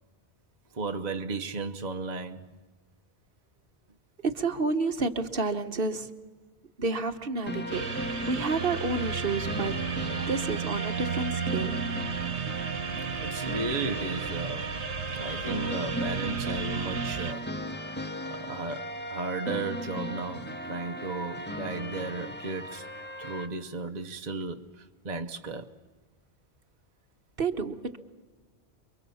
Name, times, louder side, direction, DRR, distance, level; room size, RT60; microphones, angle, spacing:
voice 1, 0.7-2.5 10.2-10.3 13.1-14.8 15.1-17.6 18.3-22.9 23.2-25.8, right 3 dB, 40° right, 1.0 m, -35 dB
voice 2, 4.2-6.1 6.8-8.0 8.3-9.9 10.3-11.8 27.4-28.0, right 3 dB, 60° right, 1.4 m, -30 dB
sound 1, 7.5-23.5, equal, 10° left, 1.6 m, -37 dB
sound 2, 7.7-17.3, right 6 dB, 80° right, 1.4 m, -34 dB
28.0 x 23.5 x 7.0 m
omnidirectional pair, 1.1 m